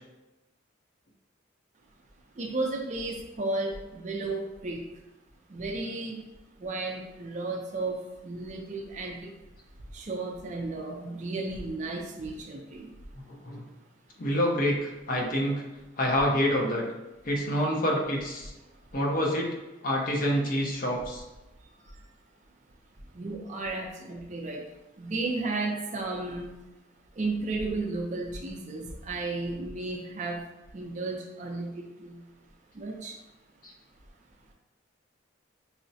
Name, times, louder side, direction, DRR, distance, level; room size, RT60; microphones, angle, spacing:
voice 1, 2.3-4.9 5.5-6.2 6.6-9.3 9.9-12.9 21.6-22.0 23.1-26.5 27.1-30.4 30.7-32.3 32.7-33.2, right 2 dB, 40° right, 1 dB, 0.4 m, -34 dB
voice 2, 13.1-13.6 14.2-15.6 16.0-16.8 17.2-18.5 18.9-19.5 19.8-21.2 33.6-33.7, equal, 45° left, -1 dB, 0.6 m, -27 dB
5.5 x 2.0 x 2.7 m, 1.0 s
head